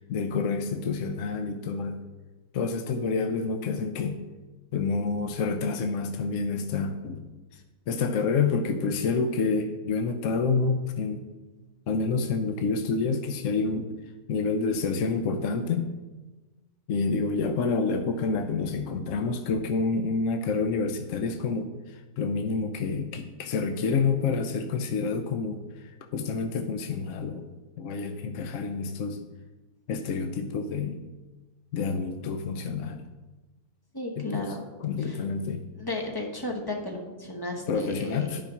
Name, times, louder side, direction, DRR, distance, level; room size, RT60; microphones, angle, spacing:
voice 1, 0.0-2.0 2.5-4.2 4.7-7.3 7.9-11.2 11.9-13.9 14.3-15.9 16.9-21.7 22.2-25.6 26.1-27.5 27.8-29.2 29.9-31.0 31.7-33.1 34.2-34.5 34.8-35.6 37.7-38.4, left 4 dB, 65° left, 6 dB, 1.0 m, -28 dB
voice 2, 33.9-34.6 35.0-35.2 35.7-38.4, left 1 dB, 15° left, 2 dB, 1.1 m, -34 dB
9.9 x 5.5 x 5.8 m, 1.2 s
omnidirectional pair, 1.6 m